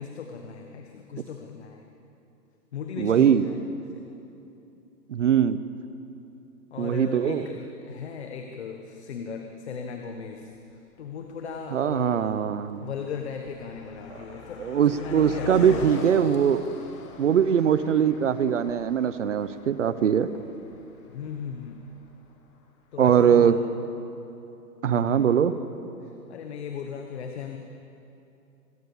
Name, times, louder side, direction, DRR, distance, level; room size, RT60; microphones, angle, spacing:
voice 1, 0.0-1.9 2.7-3.6 3.9-4.1 6.7-12.3 12.8-16.1 21.1-21.8 22.9-23.6 24.9-25.3 26.0-27.6, left 6 dB, 40° left, 4 dB, 1.4 m, -37 dB
voice 2, 3.0-3.5 5.1-5.6 6.8-7.5 11.7-12.9 14.7-16.8 17.2-20.3 23.0-23.6 24.8-25.5, right 8 dB, 45° right, 14 dB, 0.9 m, -21 dB
Car passing by, 10.5-10.6 11.4-11.7 11.9-22.3, left 3 dB, 20° left, 1.4 m, -43 dB
26.0 x 14.5 x 7.2 m, 2.8 s
hypercardioid pair, 165°, 49 cm